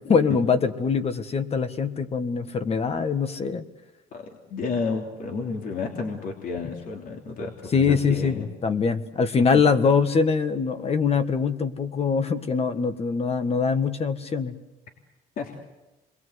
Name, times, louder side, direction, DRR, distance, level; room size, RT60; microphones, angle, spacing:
voice 1, 0.1-3.6 7.7-14.5, left 5 dB, 35° left, 9 dB, 1.6 m, -23 dB
voice 2, 4.1-8.4 15.4-15.6, left 4 dB, 55° left, 1 dB, 3.1 m, -31 dB
28.0 x 22.0 x 8.1 m, 1.1 s
cardioid pair, 110°, 17 cm